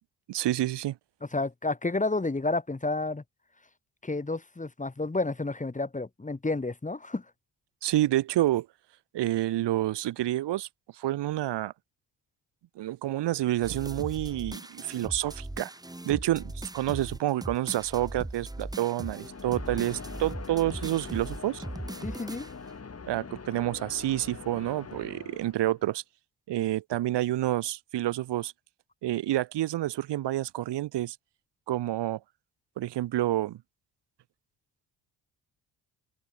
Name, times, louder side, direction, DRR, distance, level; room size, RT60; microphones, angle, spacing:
voice 1, 0.3-1.0 7.8-8.7 9.1-10.7 10.9-11.7 12.8-15.7 16.0-21.6 23.1-26.0 26.5-28.5 29.0-31.2 31.7-32.2 32.8-33.6, right 14 dB, 75° right, 1.1 m, -28 dB
voice 2, 1.3-3.2 4.0-7.2 22.0-22.5, left 3 dB, 20° left, 2.8 m, -30 dB
sound 1, 13.6-22.8, right 2 dB, 10° right, 1.7 m, -39 dB
sound 2, 19.0-25.9, left 5 dB, 35° left, 5.6 m, -43 dB
open air
cardioid pair, 85°, 42 cm